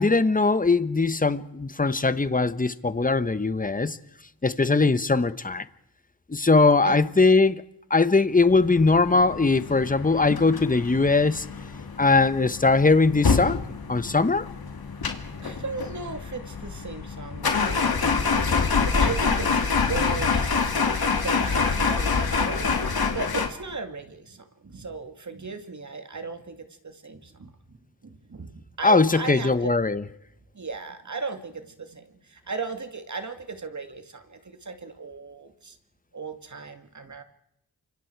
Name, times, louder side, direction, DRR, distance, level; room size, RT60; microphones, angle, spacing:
voice 1, 0.0-4.0 4.4-5.7 6.3-7.6 7.9-11.4 12.0-13.6 13.9-14.5 28.8-30.0, left 3 dB, 25° left, 1.1 m, -20 dB
sound 1, 8.5-23.5, left 5 dB, 80° left, 2.4 m, -26 dB
voice 2, 15.4-20.9 21.2-29.7 30.5-35.8 36.1-37.2, right 4 dB, 50° right, 2.4 m, -37 dB
28.5 x 25.5 x 4.7 m
wide cardioid pair, 65°, 36 cm